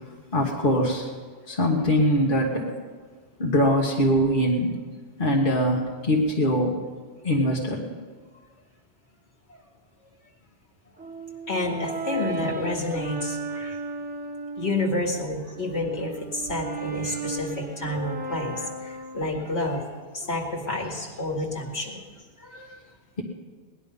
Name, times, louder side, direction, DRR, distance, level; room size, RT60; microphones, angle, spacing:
voice 1, 0.3-1.1 1.5-2.7 3.4-4.8 5.2-6.8 7.2-7.9, equal, 50° left, -2 dB, 1.8 m, -22 dB
Brass instrument, 11.0-15.0 15.5-19.6, right 3 dB, 10° right, 0.9 m, -35 dB
voice 2, 11.5-13.8 14.6-19.9 20.1-22.0 22.4-22.8, left 2 dB, 70° left, -1 dB, 2.5 m, -29 dB
19.0 x 11.0 x 5.4 m, 1.5 s
omnidirectional pair, 1.2 m